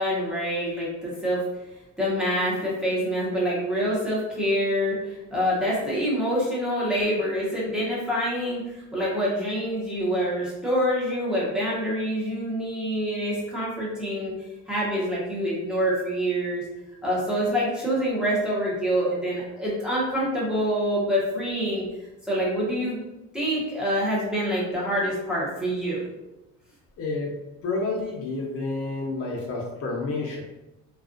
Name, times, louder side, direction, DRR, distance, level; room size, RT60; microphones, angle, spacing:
voice 1, 0.0-1.4 2.0-14.3 14.7-16.6 17.0-21.8 22.3-23.0 23.3-26.0, equal, ahead, -7 dB, 0.7 m, -26 dB
voice 2, 27.0-27.4 27.6-30.4, left 3 dB, 45° left, -1 dB, 0.7 m, -29 dB
2.4 x 2.3 x 2.4 m, 0.97 s
cardioid pair, 150°, 32 cm